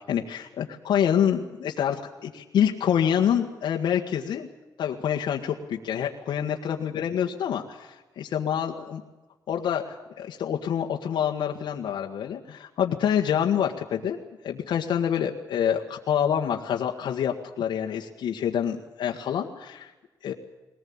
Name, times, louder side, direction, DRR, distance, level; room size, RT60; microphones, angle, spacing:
voice 1, 0.1-4.5 4.8-9.0 9.5-14.2 14.4-19.9 20.2-20.3, left 9 dB, 75° left, 1 dB, 1.7 m, -27 dB
21.0 x 19.0 x 8.8 m, 1.1 s
cardioid pair, 125°, 8 cm